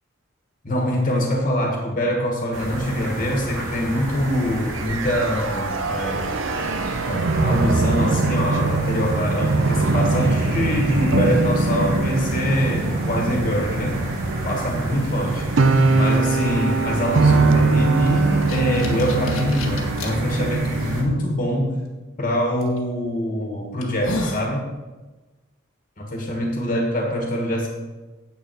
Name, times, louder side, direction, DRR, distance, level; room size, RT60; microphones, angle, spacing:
voice 1, 0.6-6.3 7.0-14.0 14.5-15.5 15.9-21.7 22.2-24.7 26.0-27.7, equal, 35° left, 0 dB, 1.7 m, -24 dB
sound 1, 2.5-21.0, right 1 dB, 80° right, 2.3 m, -32 dB
sound 2, 4.7-21.2, right 3 dB, 65° right, 0.6 m, -22 dB
sound 3, 18.1-20.1 20.8-20.9 22.6-22.8 23.3-23.4 23.8-24.5, left 2 dB, 85° left, 1.6 m, -31 dB
9.2 x 8.2 x 4.7 m, 1.2 s
head